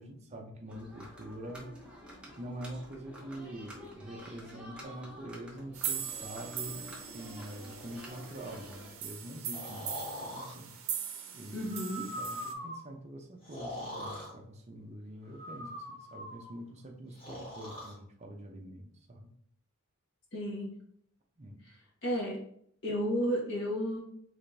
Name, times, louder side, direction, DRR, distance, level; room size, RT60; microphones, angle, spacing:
voice 1, 0.0-1.7 2.4-6.9 7.1-10.7 11.3-19.3 21.4-21.6, right 1 dB, 30° right, 2 dB, 0.6 m, -45 dB
sound 1, 0.7-8.9, equal, 5° right, 0.8 m, -49 dB
sound 2, 5.7-12.5, right 8 dB, 70° right, 0.6 m, -40 dB
Breathing, 9.5-10.5 11.6-12.9 13.4-14.3 15.3-16.5 17.2-17.9, equal, 25° left, 1.5 m, -42 dB
voice 2, 11.5-12.0 20.3-20.7 22.0-22.4 22.8-24.0, equal, 60° left, -3 dB, 1.6 m, -32 dB
4.9 x 3.3 x 2.6 m, 0.66 s
head